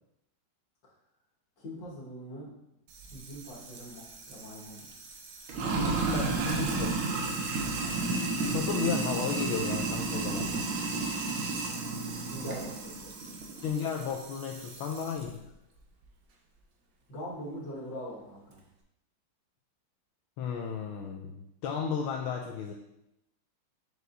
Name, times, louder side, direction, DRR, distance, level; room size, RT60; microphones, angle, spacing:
voice 1, 1.6-2.6 3.1-4.9 8.4-8.6 10.3-10.7 12.3-13.7 17.1-18.6, equal, 65° left, -5 dB, 2.4 m, -43 dB
Sink (filling or washing), 2.9-15.2, right 3 dB, 85° right, 1.7 m, -33 dB
voice 2, 6.1-7.0 8.4-10.7 13.6-15.4 20.4-22.7, left 6 dB, 85° left, 1 dB, 1.5 m, -34 dB
6.6 x 6.4 x 2.7 m, 0.83 s
omnidirectional pair, 2.2 m